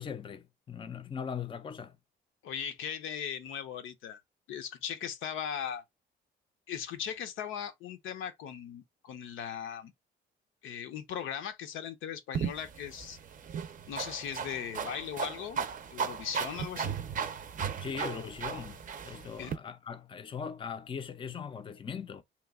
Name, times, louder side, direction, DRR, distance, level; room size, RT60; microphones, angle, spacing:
voice 1, 0.0-2.0 17.8-22.2, left 7 dB, 25° left, 0.4 m, -40 dB
voice 2, 2.4-4.2 4.5-5.8 6.7-9.9 10.6-13.2 13.9-15.7 15.9-17.0 18.0-18.1 19.4-19.5, left 8 dB, 85° left, 0.6 m, -38 dB
sound 1, 12.3-19.6, right 7 dB, 40° right, 0.5 m, -36 dB
3.0 x 2.2 x 3.4 m
cardioid pair, 90°, 20 cm